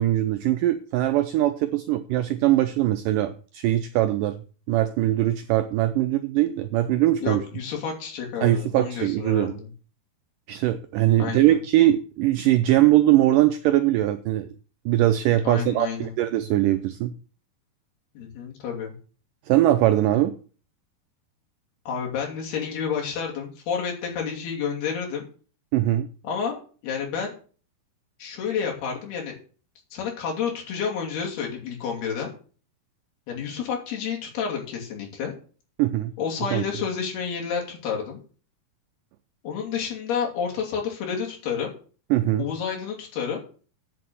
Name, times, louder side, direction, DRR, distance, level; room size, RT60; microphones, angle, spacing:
voice 1, 0.0-4.4 4.7-7.4 8.4-9.6 10.5-14.5 14.9-17.1 19.5-20.3 25.7-26.1 35.8-36.1 36.5-36.6 42.1-42.5, right 14 dB, 85° right, 10 dB, 1.9 m, -21 dB
voice 2, 7.2-9.7 11.2-11.6 15.4-16.1 18.1-18.9 21.9-25.2 26.2-27.3 28.2-29.3 29.9-32.3 33.3-35.3 36.2-38.2 39.4-41.7 42.4-43.4, left 6 dB, 75° left, 0 dB, 4.7 m, -30 dB
8.3 x 6.9 x 7.6 m, 0.40 s
omnidirectional pair, 4.5 m